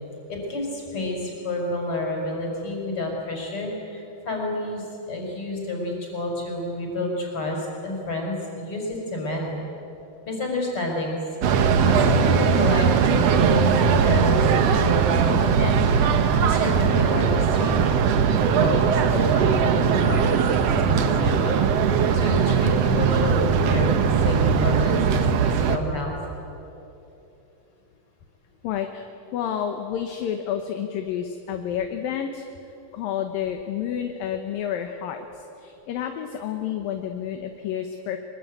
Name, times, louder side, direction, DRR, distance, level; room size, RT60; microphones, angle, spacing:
voice 1, 0.3-9.6 10.3-11.2 11.6-15.8 16.4-17.8 18.5-20.6 20.8-21.6 22.1-26.2, left 2 dB, 35° left, 0 dB, 6.0 m, -29 dB
sound 1, 11.4-25.8, right 6 dB, 75° right, 1.4 m, -20 dB
voice 2, 28.6-29.1 29.3-32.5 32.9-38.2, left 9 dB, 70° left, 6 dB, 2.7 m, -30 dB
24.5 x 22.0 x 9.5 m, 2.9 s
omnidirectional pair, 4.6 m